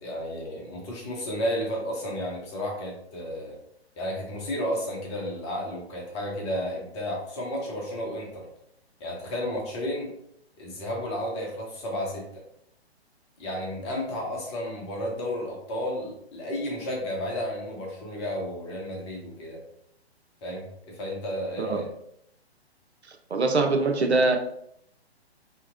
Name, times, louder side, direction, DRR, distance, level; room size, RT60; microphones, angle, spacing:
voice 1, 0.0-3.6 4.0-8.5 9.0-10.1 10.6-12.4 13.4-19.6 20.4-21.9, equal, 25° left, -1 dB, 0.8 m, -32 dB
voice 2, 23.3-24.4, right 3 dB, 85° right, 5 dB, 0.5 m, -23 dB
2.8 x 2.8 x 2.5 m, 0.75 s
figure-of-eight pair, 125°, 32 cm